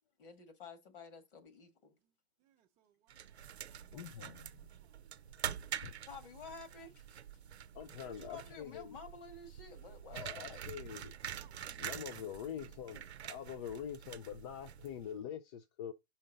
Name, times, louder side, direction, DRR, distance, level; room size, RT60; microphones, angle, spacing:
voice 1, 0.2-2.0 6.1-7.1 8.0-10.6, left 4 dB, 55° left, 1.9 m, -51 dB
voice 2, 2.4-4.2 4.4-5.3 11.2-11.9, right 11 dB, 25° right, 0.6 m, -71 dB
sound 1, 3.1-15.2, right 9 dB, 90° right, 0.6 m, -46 dB
voice 3, 3.9-4.5 5.8-5.9 7.7-9.0 10.1-11.1 11.8-15.9, left 9 dB, 25° left, 0.4 m, -45 dB
5.6 x 3.7 x 5.2 m
hypercardioid pair, 135°, 31 cm